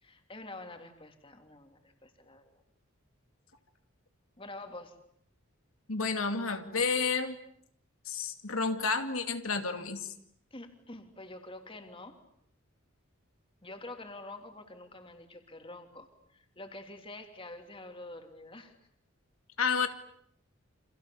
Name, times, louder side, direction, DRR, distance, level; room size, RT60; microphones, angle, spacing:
voice 1, 0.0-2.6 4.4-5.0 10.5-12.2 13.6-18.7, left 2 dB, 25° left, 5 dB, 3.3 m, -47 dB
voice 2, 5.9-7.4 8.1-10.1 19.6-19.9, left 5 dB, 90° left, 6 dB, 2.5 m, -30 dB
30.0 x 27.0 x 7.2 m, 0.68 s
head